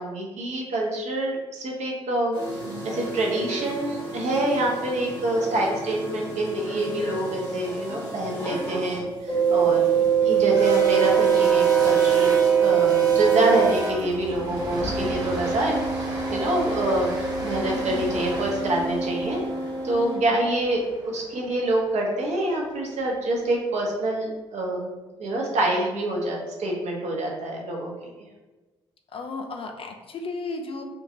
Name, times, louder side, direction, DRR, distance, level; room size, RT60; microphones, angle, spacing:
voice 1, 0.0-2.4 2.8-9.9 10.2-17.1 17.4-19.4 19.8-24.9 25.2-27.9, right 1 dB, 50° right, -1 dB, 0.9 m, -26 dB
sound 1, 2.3-9.0 9.3-13.6 13.9-20.1, right 7 dB, 90° left, 1.1 m, -25 dB
sound 2, 9.3-21.5, right 1 dB, 25° right, 1.0 m, -33 dB
voice 2, 14.8-15.2 17.7-18.1 20.1-20.5 29.1-30.8, left 3 dB, 40° left, 3 dB, 0.5 m, -35 dB
3.6 x 2.4 x 2.7 m, 1.2 s
figure-of-eight pair, 45°, 14 cm